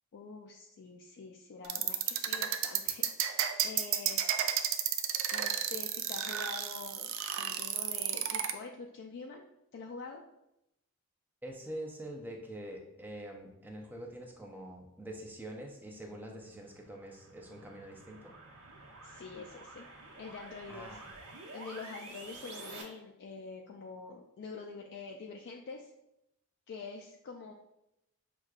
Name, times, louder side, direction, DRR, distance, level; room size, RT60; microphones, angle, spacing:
voice 1, 0.1-4.3 5.3-9.4 9.7-10.2 19.0-19.9 20.2-21.0 21.5-25.9 26.7-27.5, left 4 dB, 50° left, 1 dB, 0.3 m, -46 dB
sound 1, 1.6-8.5, right 10 dB, 60° right, 0.3 m, -31 dB
voice 2, 11.4-18.3 20.7-21.1, right 1 dB, 10° right, 1 dB, 0.5 m, -45 dB
sound 2, 16.3-22.8, right 2 dB, 85° right, 0.8 m, -50 dB
6.2 x 2.2 x 2.3 m, 0.86 s
head